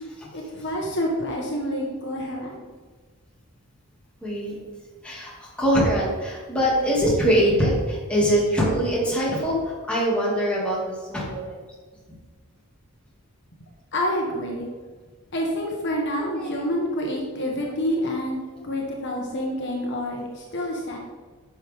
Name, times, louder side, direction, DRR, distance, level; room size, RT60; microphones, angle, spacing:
voice 1, 0.3-2.5 13.9-14.7 15.3-21.0, equal, 55° left, -1 dB, 1.4 m, -28 dB
voice 2, 4.2-4.6 5.0-11.6 12.1-12.2 16.2-16.7 18.5-18.6, equal, 5° left, -6 dB, 2.4 m, -23 dB
10.5 x 6.3 x 3.6 m, 1.4 s
head